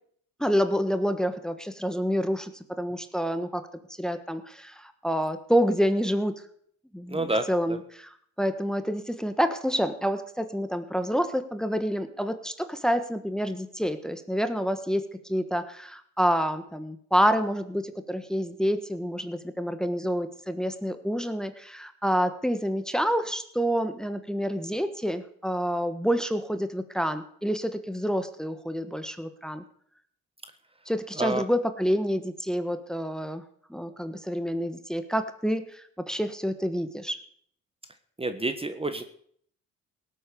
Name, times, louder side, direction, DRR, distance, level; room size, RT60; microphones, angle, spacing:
voice 1, 0.4-3.7 4.0-6.3 6.9-29.6 30.9-33.4 33.7-37.2, equal, ahead, 9 dB, 1.4 m, -28 dB
voice 2, 7.1-7.8 31.2-31.5 38.2-39.0, right 2 dB, 20° right, 9 dB, 1.4 m, -29 dB
17.5 x 8.3 x 6.9 m, 0.63 s
cardioid pair, 90°, 30 cm